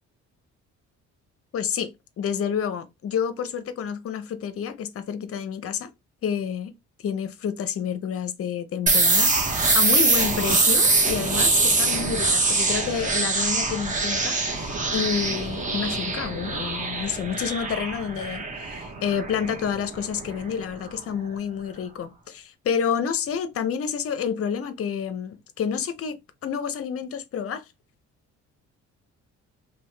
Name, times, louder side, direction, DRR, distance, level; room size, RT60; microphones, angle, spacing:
voice 1, 1.5-5.9 6.2-6.7 7.0-9.3 9.7-27.6, left 7 dB, 50° left, 0.6 m, -29 dB
sound 1, 8.9-20.5, right 3 dB, 25° right, 0.9 m, -23 dB
2.8 x 2.2 x 3.2 m
cardioid pair, 90°, 30 cm